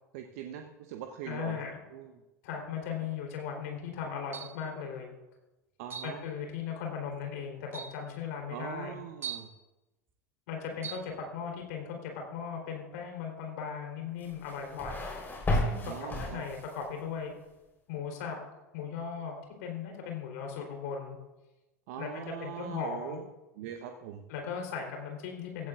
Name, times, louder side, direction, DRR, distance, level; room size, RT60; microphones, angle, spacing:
voice 1, 0.1-1.6 1.9-2.1 5.8-6.2 8.5-9.5 15.8-16.4 21.9-23.2 23.6-24.6, right 9 dB, 55° right, 5 dB, 1.0 m, -41 dB
voice 2, 1.2-1.8 2.4-5.1 6.0-9.0 10.5-15.1 15.5-17.3 17.9-18.4 18.7-21.2 22.0-23.2 24.3-25.7, left 6 dB, 60° left, 1 dB, 3.8 m, -38 dB
sound 1, 4.3-4.7 5.9-6.2 7.1-7.2 7.7-8.0 9.2-9.6 10.8-11.1, right 8 dB, 25° right, 1.4 m, -40 dB
sound 2, 14.2-16.9, left 1 dB, 20° left, 4.2 m, -33 dB
16.0 x 15.0 x 2.5 m, 1.1 s
figure-of-eight pair, 80°, 9 cm